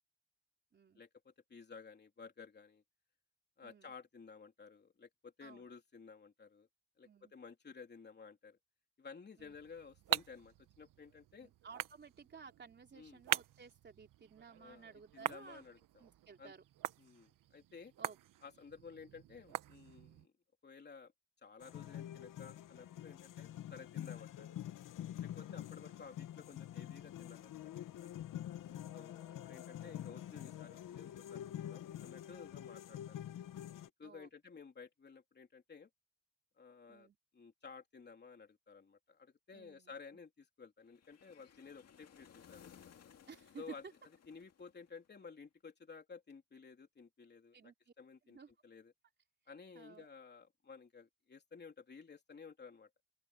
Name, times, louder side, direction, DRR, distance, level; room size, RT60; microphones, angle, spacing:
voice 1, 1.0-2.8 3.6-6.7 7.0-8.6 9.0-11.5 12.9-13.2 14.6-16.0 16.4-16.5 17.0-17.9 18.4-20.3 20.6-21.1 21.4-24.6 25.2-28.2 28.9-33.2 34.0-35.9 36.6-37.1 37.3-42.7 43.6-43.8 44.3-48.4 48.6-48.9 49.5-52.9, left 5 dB, 30° left, 3.3 m, -54 dB
voice 2, 3.6-3.9 5.4-5.7 7.0-7.3 9.4-9.5 11.4-15.6 16.0-16.6 18.0-18.2 25.5-25.7 28.6-28.9 29.3-29.5 34.0-34.3 36.9-37.2 39.5-39.9 43.3-43.8 47.5-47.9 48.3-48.5 49.8-50.1, right 5 dB, 35° right, 3.6 m, -55 dB
sound 1, 9.4-20.3, right 12 dB, 80° right, 1.0 m, -44 dB
sound 2, 21.6-33.9, left 11 dB, 75° left, 1.1 m, -47 dB
sound 3, 40.9-45.2, left 8 dB, 50° left, 2.2 m, -61 dB
open air
cardioid pair, 150°, 32 cm